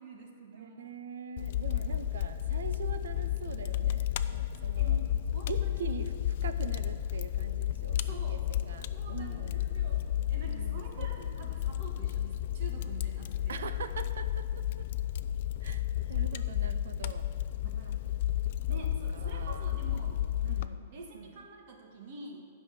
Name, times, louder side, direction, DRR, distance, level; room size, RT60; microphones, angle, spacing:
voice 1, 0.0-0.8 1.7-1.8 4.8-6.0 7.9-8.6 8.9-13.7 17.6-18.1 18.7-22.5, right 2 dB, 45° right, 1 dB, 1.7 m, -48 dB
voice 2, 0.5-5.0 5.5-6.1 6.4-9.6 10.5-11.1 13.5-14.9 15.6-17.3 18.7-18.8 19.1-19.7 20.4-20.8 21.1-21.4, right 6 dB, 90° right, 10 dB, 0.7 m, -43 dB
Fire, 1.4-20.7, left 11 dB, 45° left, 0.3 m, -32 dB
11.5 x 5.6 x 7.3 m, 2.2 s
hypercardioid pair, 170°, 0 cm